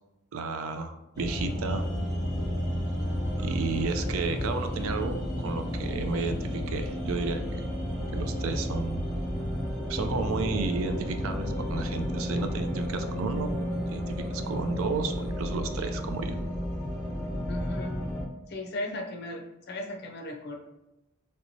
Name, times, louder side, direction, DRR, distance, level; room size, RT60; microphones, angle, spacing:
voice 1, 0.3-1.8 3.4-7.6 8.1-9.1 9.9-13.5 13.9-16.4, right 4 dB, 75° right, 7 dB, 0.4 m, -32 dB
sound 1, 1.1-18.2, equal, 15° left, 1.1 m, -32 dB
voice 2, 17.5-17.9 18.5-20.5, left 1 dB, 50° left, 3 dB, 0.5 m, -36 dB
3.2 x 3.0 x 2.6 m, 0.92 s
head